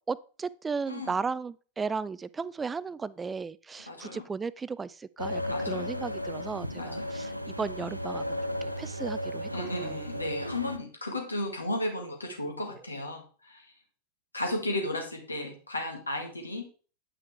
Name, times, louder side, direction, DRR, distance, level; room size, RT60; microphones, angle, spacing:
voice 1, 0.1-7.3 7.6-9.9, right 5 dB, 15° right, 0.3 m, -35 dB
voice 2, 3.9-4.2 5.5-6.0 6.8-7.2 9.5-13.7 14.3-16.6, left 1 dB, 80° left, 1.9 m, -34 dB
sound 1, 5.2-10.8, equal, 90° right, 0.5 m, -35 dB
9.1 x 5.7 x 3.4 m
figure-of-eight pair, 90°, 0 cm